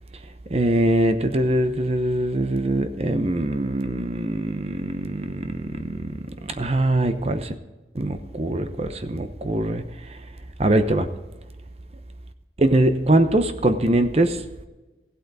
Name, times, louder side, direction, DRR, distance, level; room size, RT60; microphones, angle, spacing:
voice 1, 0.5-6.2 6.4-7.5 7.9-9.8 10.6-11.1 12.6-14.4, right 1 dB, 35° right, 9 dB, 0.8 m, -22 dB
16.0 x 8.3 x 4.1 m, 1.1 s
head